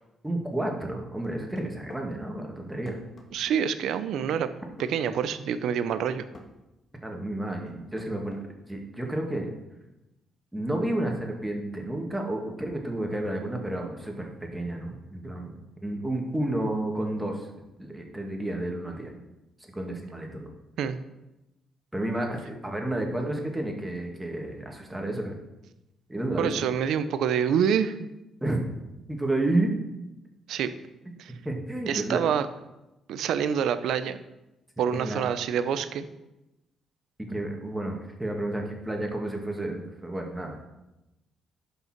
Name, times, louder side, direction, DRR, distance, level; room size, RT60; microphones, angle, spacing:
voice 1, 0.2-3.0 7.0-8.4 8.7-9.5 10.5-17.5 17.8-19.1 19.7-20.5 21.9-25.4 26.1-26.5 28.4-28.7 29.1-29.7 31.3-32.3 34.9-35.2 37.3-40.6, right 1 dB, 10° right, 1 dB, 2.4 m, -31 dB
sound 1, 1.2-2.1 2.8-3.6 4.8-5.3 6.3-6.5 7.7-8.5, left 2 dB, 45° left, 1.9 m, -48 dB
voice 2, 3.3-4.5 4.8-6.3 20.8-21.0 26.4-28.1 30.5-30.7 31.2-31.3 31.9-32.5 33.1-34.2 34.8-36.1, right 8 dB, 75° right, 12 dB, 0.7 m, -26 dB
11.0 x 5.5 x 4.6 m, 0.97 s
supercardioid pair, 65°, 0 cm